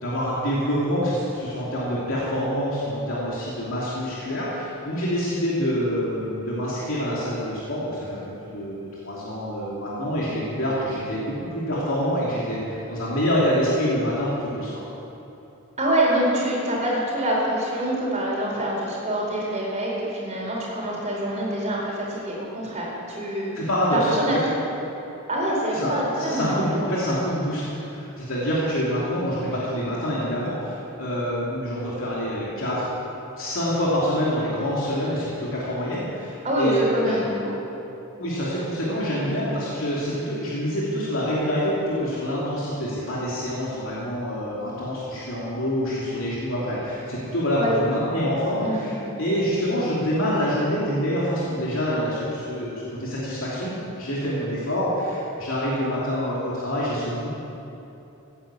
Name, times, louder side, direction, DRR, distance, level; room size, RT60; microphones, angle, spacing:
voice 1, 0.0-8.2 8.4-14.8 23.5-24.4 25.7-32.9 33.4-37.2 38.2-57.3, equal, 60° left, -7 dB, 3.0 m, -26 dB
voice 2, 15.8-23.5 23.9-24.4 25.3-26.8 36.4-37.6 39.1-39.3 47.6-48.1 48.6-48.9, right 1 dB, 30° right, -4 dB, 4.1 m, -25 dB
17.0 x 9.7 x 7.1 m, 2.9 s
head